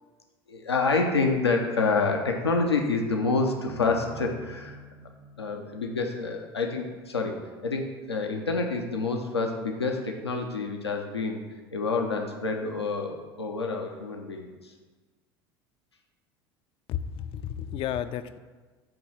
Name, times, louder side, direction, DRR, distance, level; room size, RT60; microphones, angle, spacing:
voice 1, 0.5-4.8 5.4-7.4 7.6-11.4 11.7-14.7, left 3 dB, 90° left, 2 dB, 0.7 m, -28 dB
sound 1, 3.7-6.9, right 4 dB, 40° right, 0.7 m, -46 dB
voice 2, 16.9-18.4, left 9 dB, 45° left, 12 dB, 0.4 m, -32 dB
8.7 x 3.1 x 6.1 m, 1.4 s
figure-of-eight pair, 70°, 13 cm